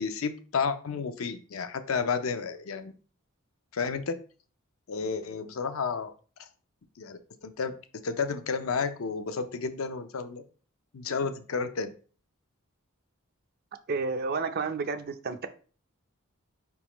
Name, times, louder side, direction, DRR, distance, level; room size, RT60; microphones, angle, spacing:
voice 1, 0.0-2.9 3.7-4.2 4.9-6.1 6.4-6.5 7.0-7.7 8.0-10.4 10.9-11.9, left 5 dB, 75° left, 0.5 m, -31 dB
voice 2, 13.9-15.5, right 4 dB, 45° right, 0.5 m, -31 dB
4.9 x 3.5 x 3.0 m
head